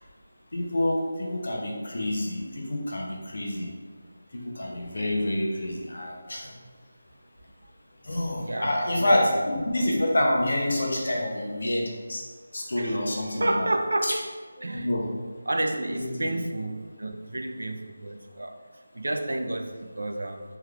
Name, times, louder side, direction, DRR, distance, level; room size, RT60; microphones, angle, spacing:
voice 1, 0.5-3.7 4.3-6.5 8.0-12.2 12.5-13.7 14.0-14.1 14.8-15.1 15.9-16.3, left 1 dB, 50° left, -1 dB, 0.6 m, -27 dB
voice 2, 8.5-9.1 12.8-13.0 13.4-14.2 14.6-14.9 15.5-18.6 18.9-20.4, right 1 dB, 75° right, 5 dB, 0.3 m, -30 dB
3.3 x 3.2 x 2.3 m, 1.5 s
figure-of-eight pair, 180°, 0 cm